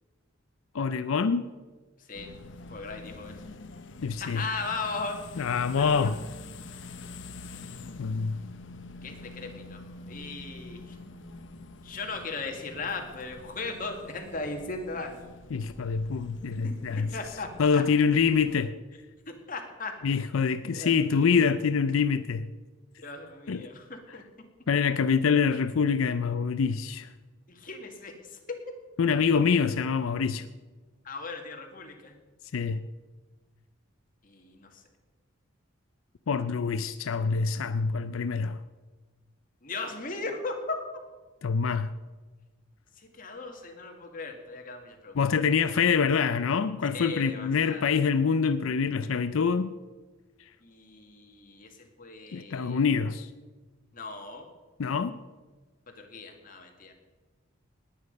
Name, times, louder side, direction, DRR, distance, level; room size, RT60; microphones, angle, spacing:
voice 1, 0.7-1.5 4.0-4.4 5.4-6.2 8.0-8.4 15.5-17.1 17.6-18.7 20.0-22.5 23.5-23.7 24.7-27.1 29.0-30.5 32.5-32.8 36.3-38.6 41.4-41.9 45.1-49.7 52.3-53.3 54.8-55.2, left 5 dB, 85° left, 0.5 m, -25 dB
voice 2, 2.0-2.3 2.7-3.3 4.2-5.5 5.8-6.1 9.0-9.8 10.1-11.0 11.8-15.3 16.6-16.7 17.1-17.8 19.5-19.9 20.7-21.4 23.0-24.2 27.5-28.4 28.7-28.8 31.0-32.2 34.2-34.8 39.6-40.8 43.0-45.2 46.9-47.9 50.6-52.8 53.9-54.5 55.9-56.9, left 3 dB, 40° left, 1.9 m, -38 dB
sound 1, 2.1-18.7, left 3 dB, 60° left, 0.9 m, -46 dB
19.5 x 8.6 x 5.3 m
head